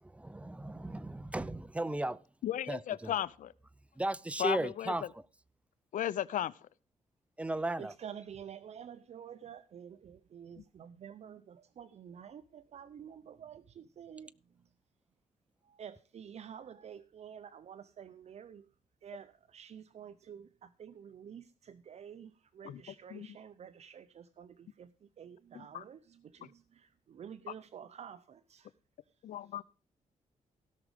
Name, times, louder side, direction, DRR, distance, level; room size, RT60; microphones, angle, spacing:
voice 1, 0.0-2.2 2.7-3.1 4.0-5.0 7.4-7.9, right 2 dB, 10° right, 0.5 m, -35 dB
voice 2, 2.4-3.5 4.4-4.9 5.9-6.5 22.6-22.8 23.1-23.3 25.7-25.8 29.2-29.6, left 11 dB, 75° left, 0.5 m, -35 dB
voice 3, 7.8-14.6 15.6-18.7 19.0-28.7 29.4-29.6, right 8 dB, 55° right, 0.5 m, -50 dB
16.5 x 6.2 x 4.9 m
cardioid pair, 105°, 13 cm